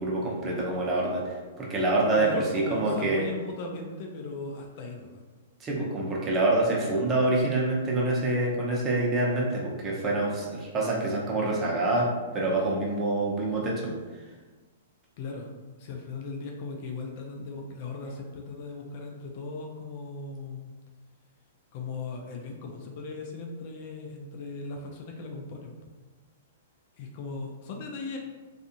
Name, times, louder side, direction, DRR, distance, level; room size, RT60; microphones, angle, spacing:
voice 1, 0.0-3.3 5.6-12.1 12.3-13.9, right 2 dB, 25° right, -3 dB, 0.7 m, -26 dB
voice 2, 2.2-5.2 15.2-15.5 15.8-20.7 21.7-25.7 27.0-28.2, left 3 dB, 50° left, 2 dB, 0.4 m, -38 dB
2.5 x 2.4 x 2.6 m, 1.3 s
hypercardioid pair, 120°, 0 cm